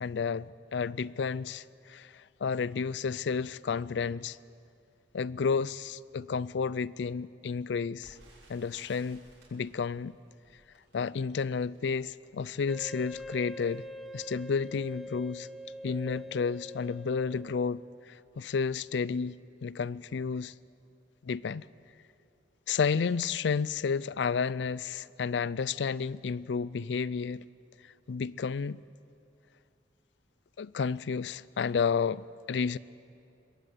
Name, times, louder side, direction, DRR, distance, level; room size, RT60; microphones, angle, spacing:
voice 1, 0.0-4.4 5.1-8.2 8.5-9.2 9.5-10.2 10.9-13.8 14.1-15.5 15.8-20.5 21.2-21.7 22.7-27.4 27.8-28.8 30.6-32.8, left 5 dB, 75° left, 0.4 m, -31 dB
Crackle, 8.0-14.9 15.5-15.6 15.9-16.2 16.8-17.0 17.3-17.4, right 1 dB, 90° right, 6.8 m, -61 dB
Wind instrument woodwind instrument, 12.7-17.7, left 1 dB, ahead, 0.8 m, -44 dB
21.5 x 16.0 x 8.0 m
head